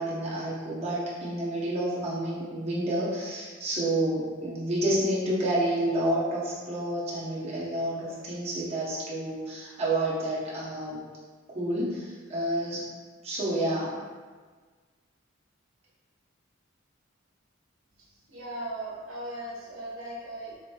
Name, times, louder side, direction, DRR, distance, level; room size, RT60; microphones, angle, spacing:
voice 1, 0.0-11.0 11.5-12.8 13.2-14.0, right 1 dB, 30° right, -7 dB, 0.8 m, -29 dB
voice 2, 18.0-20.5, right 1 dB, 80° right, -6 dB, 0.9 m, -38 dB
3.7 x 2.9 x 2.3 m, 1.5 s
head